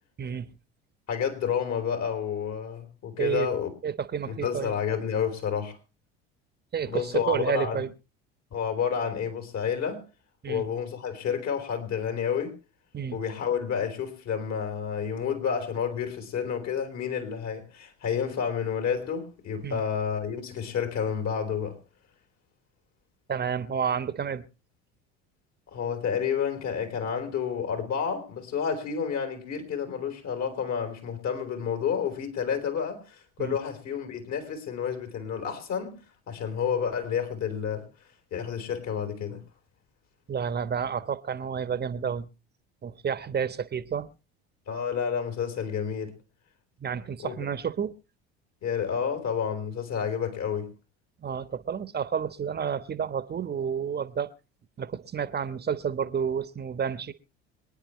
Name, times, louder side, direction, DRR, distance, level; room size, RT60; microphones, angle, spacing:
voice 1, 1.1-3.7 4.2-5.8 6.9-7.8 8.5-10.0 10.5-12.6 13.1-21.8 25.7-36.0 36.3-37.9 38.3-39.4 44.7-46.2 47.2-47.4 48.6-50.7, left 7 dB, 55° left, 4.2 m, -30 dB
voice 2, 3.8-4.7 6.7-7.9 10.4-10.6 12.9-13.2 19.6-19.8 23.3-24.4 33.4-33.6 40.3-42.3 42.8-44.1 46.8-47.9 51.2-54.3 54.8-57.1, right 7 dB, 30° right, 1.2 m, -30 dB
26.0 x 10.0 x 3.2 m
hypercardioid pair, 70°, 32 cm